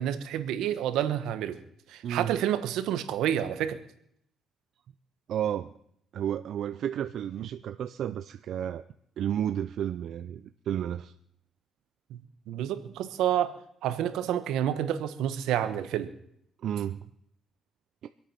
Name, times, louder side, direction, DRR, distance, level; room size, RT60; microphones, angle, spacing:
voice 1, 0.0-1.6 1.9-3.8 12.1-16.1, right 10 dB, 90° right, 11 dB, 1.2 m, -29 dB
voice 2, 5.3-5.7 6.1-8.8 9.2-11.1 16.6-17.0, right 10 dB, 70° right, 10 dB, 0.6 m, -32 dB
25.0 x 8.7 x 5.9 m, 0.72 s
cardioid pair, 90°, 0 cm